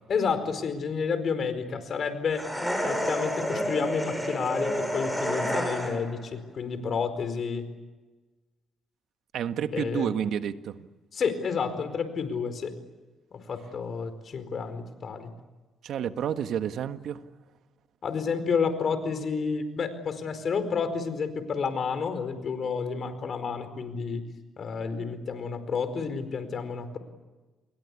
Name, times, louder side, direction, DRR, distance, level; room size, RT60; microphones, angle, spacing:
voice 1, 0.1-2.4 2.9-7.6 9.7-10.1 11.1-12.7 13.3-15.3 18.0-24.2 24.6-27.0, left 5 dB, 50° left, 10 dB, 4.6 m, -30 dB
sound 1, 2.3-6.2, equal, ahead, 7.0 m, -29 dB
voice 2, 9.3-10.9 15.8-17.2, right 9 dB, 70° right, 9 dB, 1.5 m, -30 dB
29.5 x 22.5 x 8.5 m, 1.2 s
cardioid pair, 90°, 0 cm